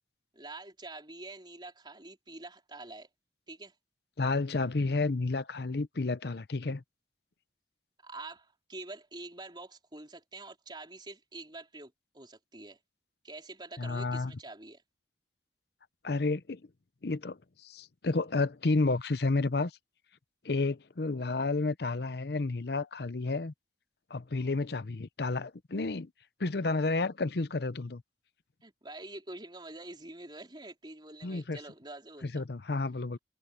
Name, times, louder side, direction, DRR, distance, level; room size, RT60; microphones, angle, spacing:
voice 1, 0.3-3.1 3.5-3.7 8.0-12.8 13.2-14.8 28.6-32.4, right 2 dB, 25° right, 4.1 m, -46 dB
voice 2, 4.2-6.8 13.8-14.3 16.0-16.6 17.0-19.7 20.4-23.5 24.1-26.1 26.4-28.0 31.2-31.6 32.2-33.2, left 3 dB, 60° left, 0.7 m, -31 dB
head